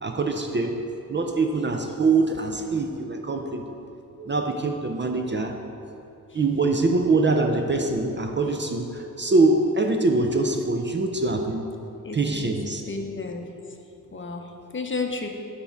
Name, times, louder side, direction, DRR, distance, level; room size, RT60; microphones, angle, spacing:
voice 1, 0.0-0.8 1.1-3.6 4.2-5.6 6.3-11.7 12.1-12.8, right 3 dB, 35° right, 4 dB, 0.4 m, -23 dB
voice 2, 12.0-12.6 12.9-13.5 14.1-15.3, left 3 dB, 35° left, 3 dB, 0.6 m, -32 dB
6.7 x 3.5 x 5.6 m, 2.8 s
wide cardioid pair, 85°, 35 cm